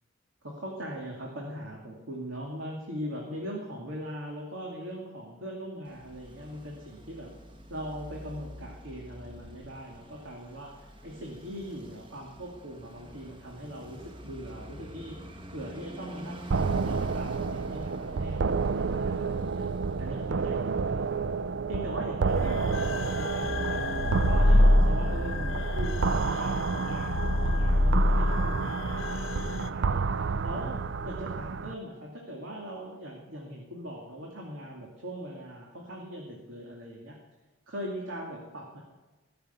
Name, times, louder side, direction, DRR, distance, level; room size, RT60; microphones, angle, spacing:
voice 1, 0.4-7.3 7.7-15.2 15.5-19.7 20.0-21.2 21.7-23.9 24.3-30.8 31.1-37.2 37.7-38.8, equal, 85° right, -2 dB, 2.5 m, -40 dB
Traffic noise roadway noise, 5.9-21.3, equal, 25° right, 1.2 m, -47 dB
sound 1, 16.5-31.7, right 5 dB, 65° right, 0.5 m, -30 dB
sound 2, 22.2-29.7, left 1 dB, 85° left, 0.9 m, -26 dB
20.0 x 6.8 x 8.3 m, 1.2 s
head